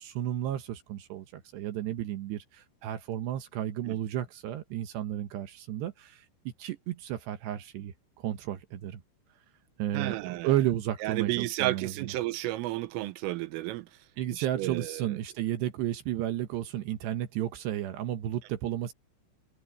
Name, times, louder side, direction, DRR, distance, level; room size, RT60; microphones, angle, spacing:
voice 1, 0.0-6.3 6.6-9.0 9.8-12.1 14.2-18.9, right 12 dB, 70° right, 2.9 m, -33 dB
voice 2, 9.9-10.5 11.0-13.9 14.3-15.2, right 16 dB, 90° right, 3.7 m, -32 dB
omnidirectional pair, 5.7 m